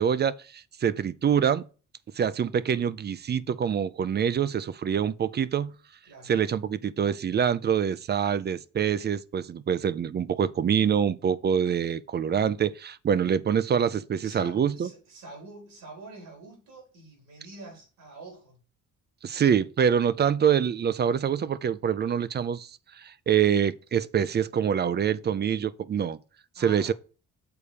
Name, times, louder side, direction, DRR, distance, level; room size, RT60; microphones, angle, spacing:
voice 1, 0.0-1.6 2.2-5.7 6.3-14.9 19.2-22.7 23.0-26.2 26.6-26.9, right 8 dB, 35° right, 0.4 m, -25 dB
voice 2, 14.2-18.6 26.6-26.9, right 2 dB, 85° right, 4.5 m, -46 dB
7.0 x 4.2 x 4.9 m
cardioid pair, 90°, 30 cm